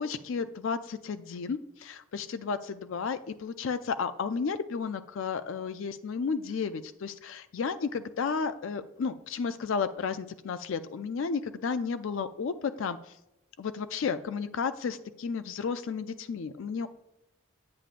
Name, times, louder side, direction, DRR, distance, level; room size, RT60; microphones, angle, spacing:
voice 1, 0.0-13.0 13.6-16.9, left 5 dB, 65° left, 11 dB, 0.4 m, -33 dB
8.8 x 8.4 x 2.5 m, 0.88 s
head